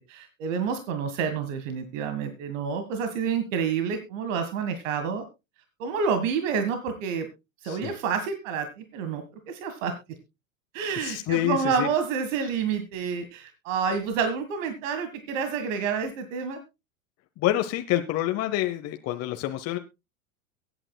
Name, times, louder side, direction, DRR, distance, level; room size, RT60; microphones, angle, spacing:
voice 1, 0.1-5.2 5.8-7.3 7.6-9.9 10.7-16.6, right 6 dB, 65° right, 7 dB, 1.9 m, -29 dB
voice 2, 11.0-11.9 17.4-19.8, left 14 dB, 35° left, 7 dB, 1.0 m, -27 dB
23.0 x 9.0 x 2.3 m, 0.25 s
hypercardioid pair, 95°, 42 cm